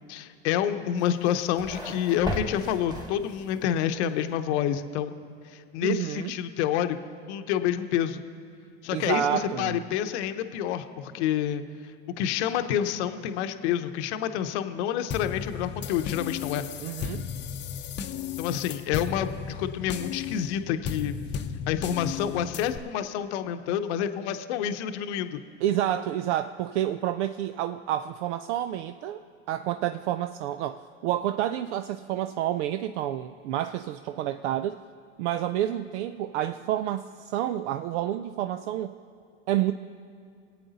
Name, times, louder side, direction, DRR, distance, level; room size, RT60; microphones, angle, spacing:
voice 1, 0.1-5.1 5.5-7.0 7.3-8.2 8.8-11.6 12.2-16.6 18.4-21.2 21.7-25.4, left 10 dB, 70° left, 9 dB, 0.9 m, -28 dB
sound 1, 1.0-3.7, equal, 10° right, 1.7 m, -36 dB
voice 2, 5.8-6.3 8.9-9.8 16.8-17.2 25.6-29.2 29.5-34.8 35.2-38.9 39.5-39.7, right 12 dB, 70° right, 10 dB, 0.5 m, -29 dB
sound 2, 15.1-22.8, left 8 dB, 30° left, 0.7 m, -35 dB
22.5 x 8.7 x 4.1 m, 2.4 s
hypercardioid pair, 105°, 36 cm